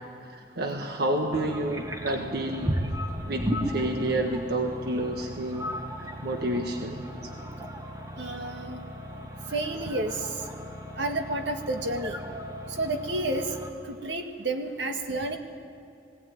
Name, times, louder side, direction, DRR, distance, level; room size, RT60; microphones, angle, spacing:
voice 1, 0.3-2.8 3.2-5.7 6.0-7.3, right 1 dB, 65° right, 3 dB, 1.5 m, -30 dB
sound 1, 1.3-13.7, equal, 20° right, 1.7 m, -36 dB
voice 2, 8.2-8.8 9.5-10.3 11.0-12.2 12.8-13.5 13.9-15.4, right 2 dB, 80° right, 4 dB, 1.9 m, -30 dB
20.5 x 17.0 x 9.4 m, 2.4 s
head